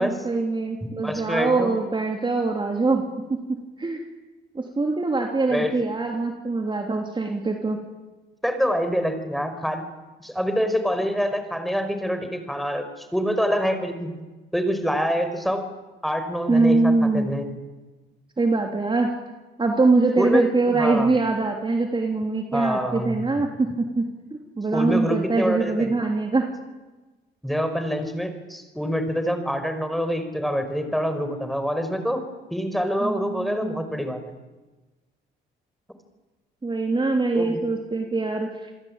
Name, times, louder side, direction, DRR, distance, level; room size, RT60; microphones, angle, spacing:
voice 1, 0.0-4.0 4.5-7.8 16.5-17.3 18.4-19.1 19.6-24.0 24.6-26.5 33.0-33.8 36.6-38.7, right 3 dB, 25° right, 2 dB, 3.2 m, -23 dB
voice 2, 1.0-1.7 5.5-5.8 8.4-9.9 10.2-14.2 14.5-15.7 16.0-17.6 20.2-21.1 22.5-23.2 24.7-25.9 27.4-32.2 32.5-34.3 37.3-37.6, equal, ahead, 8 dB, 5.2 m, -26 dB
28.0 x 22.0 x 9.0 m, 1.2 s
cardioid pair, 90°, 20 cm